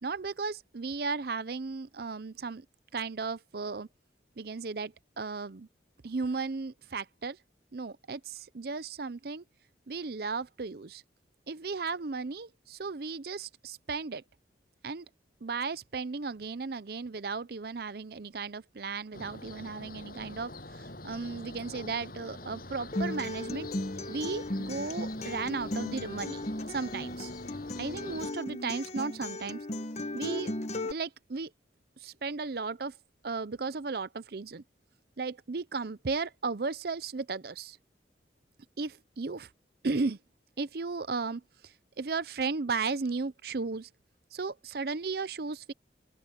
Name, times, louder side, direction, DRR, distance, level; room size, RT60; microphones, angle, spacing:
voice 1, 0.0-2.6 2.9-3.9 4.4-5.7 6.0-7.4 7.7-9.4 9.9-11.0 11.5-14.2 14.8-15.1 15.4-20.5 21.0-23.7 24.1-27.3 27.8-29.6 30.1-30.5 30.8-31.5 32.0-32.9 33.2-34.6 35.2-37.8 38.8-39.5 39.8-40.2 40.6-41.4 42.0-43.9 44.3-45.7, right 4 dB, 60° right, 0.6 m, -35 dB
sound 1, 19.1-28.3, left 2 dB, 55° left, 7.8 m, -45 dB
Acoustic guitar, 22.9-30.9, left 1 dB, 40° left, 1.0 m, -36 dB
open air
head